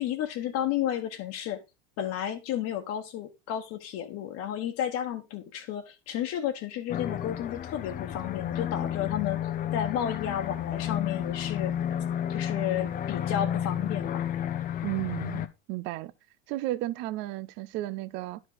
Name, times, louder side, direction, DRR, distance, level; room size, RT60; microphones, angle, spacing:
voice 1, 0.0-1.6 2.0-9.4 9.7-11.7 12.3-14.2, left 10 dB, 40° left, 1.3 m, -32 dB
sound 1, 6.9-15.5, left 10 dB, 25° left, 0.6 m, -31 dB
voice 2, 14.8-16.1 16.5-18.4, right 16 dB, 35° right, 0.4 m, -33 dB
10.5 x 5.1 x 3.9 m
supercardioid pair, 135°, 37 cm